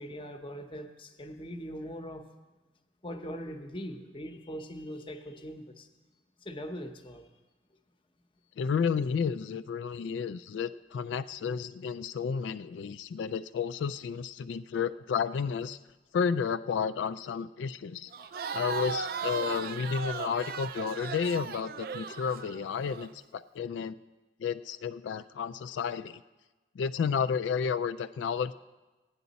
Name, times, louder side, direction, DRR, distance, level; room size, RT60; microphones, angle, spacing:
voice 1, 0.0-2.2 3.0-5.9 6.4-7.3 18.2-18.3, equal, 30° left, 6 dB, 0.7 m, -41 dB
voice 2, 8.6-15.8 16.1-18.1 18.5-24.0 24.4-26.2 26.8-28.5, left 6 dB, 90° left, 11 dB, 0.3 m, -32 dB
Crowd, 18.1-23.1, right 6 dB, 55° right, 0.4 m, -37 dB
15.5 x 9.5 x 4.0 m, 1.2 s
head